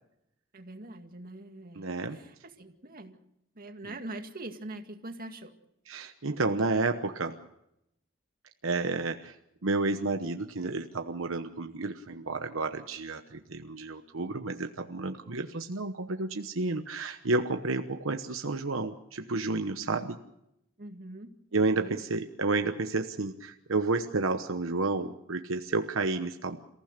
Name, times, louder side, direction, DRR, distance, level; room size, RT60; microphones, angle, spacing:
voice 1, 0.5-3.2 3.6-5.5 19.8-20.2 20.8-22.0, right 2 dB, 45° right, 5 dB, 2.1 m, -44 dB
voice 2, 1.8-2.2 5.9-7.4 8.6-9.3 9.6-20.2 21.5-26.6, right 3 dB, 80° right, 6 dB, 1.1 m, -31 dB
28.5 x 15.5 x 6.7 m, 0.81 s
head